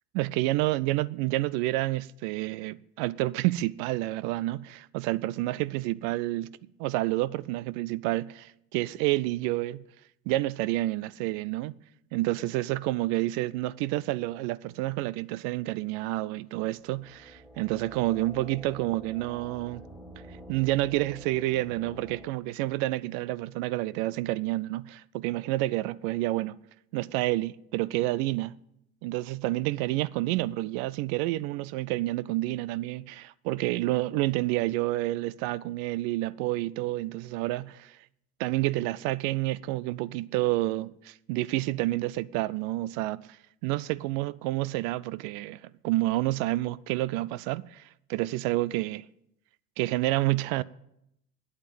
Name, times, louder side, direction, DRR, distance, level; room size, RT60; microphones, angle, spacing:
voice 1, 0.1-6.5 6.8-9.8 10.3-11.7 12.1-19.8 20.5-26.6 26.9-28.6 29.0-38.0 38.4-43.4 43.6-47.8 48.1-49.0 49.8-50.6, right 17 dB, 50° right, 0.5 m, -29 dB
sound 1, 16.8-22.2, right 1 dB, ahead, 2.2 m, -48 dB
9.5 x 8.7 x 8.8 m
hypercardioid pair, 80°, 45 cm